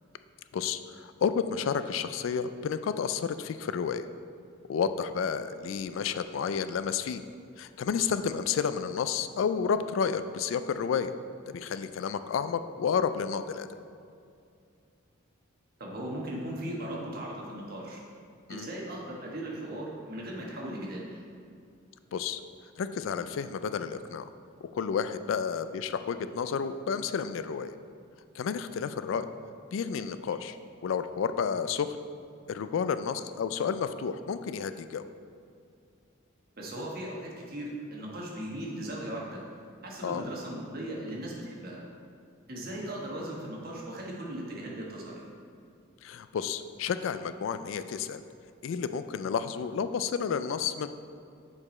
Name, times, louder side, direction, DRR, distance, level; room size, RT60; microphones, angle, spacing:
voice 1, 0.5-4.1 4.7-7.2 7.6-11.1 11.5-13.7 18.5-18.7 22.1-22.4 22.8-24.3 24.6-27.7 28.3-29.3 29.7-30.6 30.8-32.0 32.5-35.1 40.0-40.2 46.0-48.2 48.6-50.9, left 6 dB, 70° left, 12 dB, 0.3 m, -31 dB
voice 2, 15.8-18.0 18.5-21.2 36.6-39.4 39.8-41.8 42.5-45.3, right 1 dB, 50° right, -3 dB, 1.2 m, -38 dB
6.7 x 4.8 x 4.2 m, 2.4 s
head